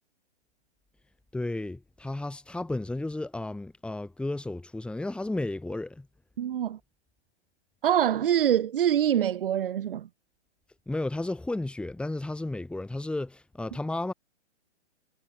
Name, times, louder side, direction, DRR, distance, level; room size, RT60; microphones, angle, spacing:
voice 1, 1.3-6.1 10.9-14.1, left 2 dB, 5° left, 4.7 m, -33 dB
voice 2, 6.4-6.8 7.8-10.1, right 10 dB, 50° right, 5.1 m, -25 dB
figure-of-eight pair, 130°, 35 cm